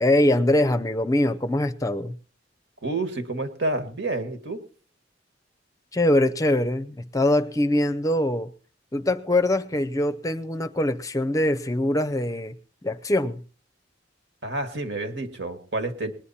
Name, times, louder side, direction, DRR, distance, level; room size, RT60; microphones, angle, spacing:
voice 1, 0.0-2.2 5.9-8.5 8.9-12.6 12.8-13.4, left 1 dB, 20° left, 0.6 m, -23 dB
voice 2, 2.8-4.6 14.4-16.1, right 2 dB, 70° right, 1.9 m, -29 dB
20.5 x 9.9 x 4.3 m
head